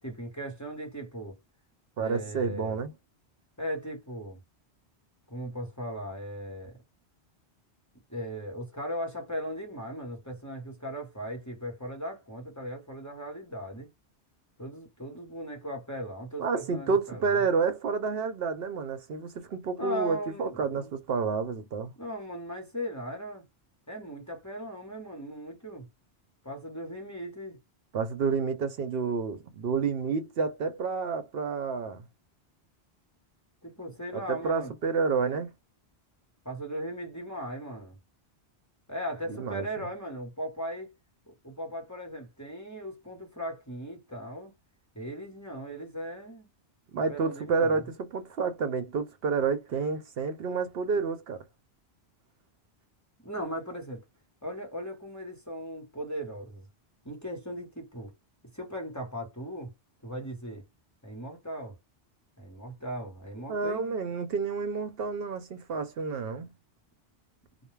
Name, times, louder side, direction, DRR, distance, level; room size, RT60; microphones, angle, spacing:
voice 1, 0.0-1.4 2.0-2.8 3.6-4.4 5.3-6.8 8.1-13.9 14.6-17.4 19.8-20.9 22.0-23.4 23.9-25.9 26.4-27.6 33.6-34.7 36.4-38.0 38.9-40.9 41.3-44.5 44.9-46.5 47.1-47.8 53.2-54.0 54.4-56.7 57.0-58.1 58.5-59.7 60.0-60.6 61.0-61.8 62.4-64.0, equal, 15° left, 1.0 m, -38 dB
voice 2, 2.0-2.9 16.4-21.9 27.9-32.0 34.1-35.5 39.3-39.6 46.9-51.4 63.5-66.5, right 5 dB, 65° right, 0.8 m, -29 dB
2.2 x 2.2 x 3.1 m
omnidirectional pair, 1.1 m